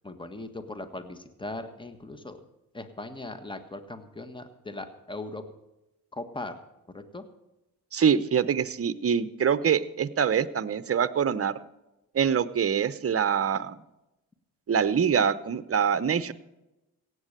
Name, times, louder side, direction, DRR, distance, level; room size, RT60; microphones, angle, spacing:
voice 1, 0.0-2.4 2.7-5.4 6.1-6.6 6.9-7.3, left 2 dB, 15° left, 9 dB, 1.5 m, -39 dB
voice 2, 7.9-11.5 12.1-13.8 14.7-16.3, right 7 dB, 40° right, 15 dB, 0.8 m, -24 dB
16.5 x 8.3 x 6.7 m, 0.94 s
cardioid pair, 75°, 37 cm